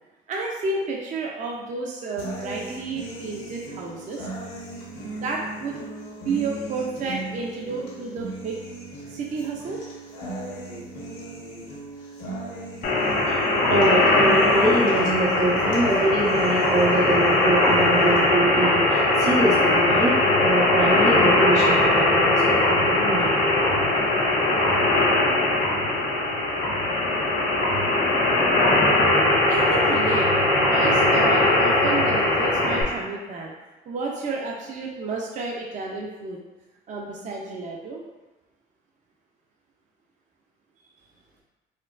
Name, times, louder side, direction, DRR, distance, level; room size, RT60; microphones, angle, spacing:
voice 1, 0.3-4.3 4.9-5.9 6.2-8.6 9.1-9.8 28.7-29.0 29.5-30.3 30.7-33.5 33.9-36.4 36.9-38.0, right 3 dB, 45° right, -1 dB, 0.5 m, -31 dB
sound 1, 2.2-18.2, right 2 dB, 85° left, 1.3 m, -37 dB
sound 2, 12.8-32.8, left 2 dB, 65° left, 0.9 m, -20 dB
voice 2, 13.6-23.3, right 1 dB, 90° right, -5 dB, 1.1 m, -24 dB
4.3 x 2.2 x 2.4 m, 1.1 s
cardioid pair, 100°, 18 cm